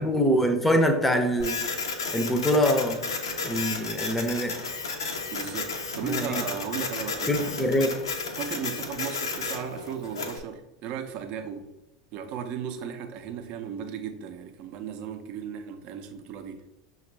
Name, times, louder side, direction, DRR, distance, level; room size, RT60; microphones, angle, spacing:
voice 1, 0.0-1.6 2.1-3.1 3.4-4.6 6.0-6.4 7.3-7.9, equal, 5° left, 6 dB, 0.6 m, -24 dB
Printer, 1.4-10.4, left 4 dB, 80° left, 0.6 m, -33 dB
voice 2, 5.3-7.5 8.4-11.7 12.1-16.7, right 7 dB, 50° right, 7 dB, 0.5 m, -36 dB
5.8 x 2.4 x 3.2 m, 0.96 s
hypercardioid pair, 85°, 2 cm